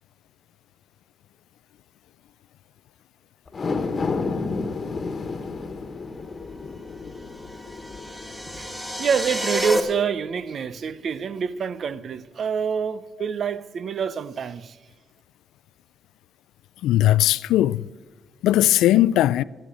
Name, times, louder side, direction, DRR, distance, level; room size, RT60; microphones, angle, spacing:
sound 1, 3.5-10.0 10.4-10.5, left 4 dB, 40° left, 1.4 m, -31 dB
sound 2, 7.2-9.8, equal, 10° right, 2.1 m, -29 dB
voice 1, 9.0-14.8, right 6 dB, 55° right, 0.7 m, -26 dB
voice 2, 16.8-17.9 18.4-19.4, left 14 dB, 85° left, 0.3 m, -18 dB
15.0 x 8.6 x 7.8 m
cardioid pair, 90°, 0 cm